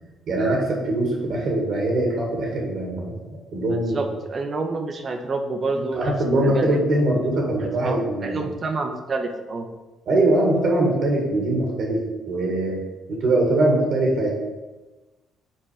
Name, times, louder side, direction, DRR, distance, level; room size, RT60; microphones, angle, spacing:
voice 1, 0.3-4.0 5.9-8.4 10.1-12.0 12.2-12.8 13.1-14.3, right 1 dB, 65° right, -1 dB, 1.8 m, -22 dB
voice 2, 3.7-6.1 6.4-7.3 7.8-9.7, right 3 dB, 45° right, 5 dB, 0.9 m, -28 dB
6.2 x 4.5 x 5.0 m, 1.2 s
hypercardioid pair, 50°, 0 cm